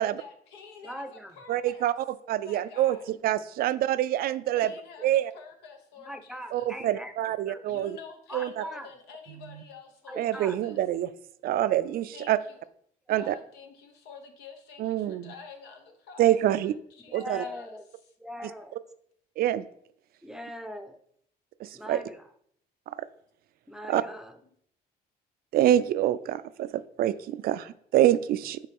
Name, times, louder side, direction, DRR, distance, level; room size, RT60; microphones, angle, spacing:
voice 1, 0.0-1.9 2.4-3.0 4.5-5.1 5.3-6.7 7.7-10.8 12.1-12.6 13.1-17.7, left 5 dB, 90° left, 4 dB, 1.2 m, -48 dB
voice 2, 0.8-1.4 6.1-7.1 7.5-7.7 8.3-8.9 10.1-10.6 17.1-17.8 18.2-18.8 20.2-21.0 21.7-22.3 23.7-24.3, equal, 5° right, 8 dB, 0.6 m, -41 dB
voice 3, 1.5-4.7 5.0-5.3 6.5-8.0 8.3-8.6 9.4-9.6 10.2-11.1 11.4-12.4 13.1-13.4 14.8-15.3 16.2-16.7 17.1-17.4 19.4-19.6 21.6-22.0 22.9-23.1 23.9-24.0 25.5-28.6, right 12 dB, 60° right, 15 dB, 0.4 m, -26 dB
5.4 x 4.0 x 5.3 m, 0.66 s
cardioid pair, 110°, 17 cm